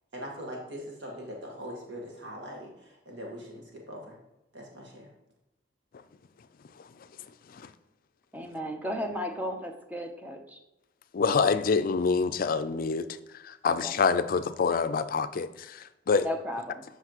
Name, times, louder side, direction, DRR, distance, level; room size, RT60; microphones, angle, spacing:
voice 1, 0.1-2.7 3.1-4.1 4.5-5.0, equal, 80° right, 0 dB, 1.6 m, -41 dB
voice 2, 8.3-10.6 13.6-14.0 16.2-16.8, equal, 10° right, 4 dB, 0.7 m, -35 dB
voice 3, 11.1-13.1 13.4-16.3, left 5 dB, 50° left, 12 dB, 0.4 m, -26 dB
7.9 x 5.6 x 3.0 m, 0.95 s
head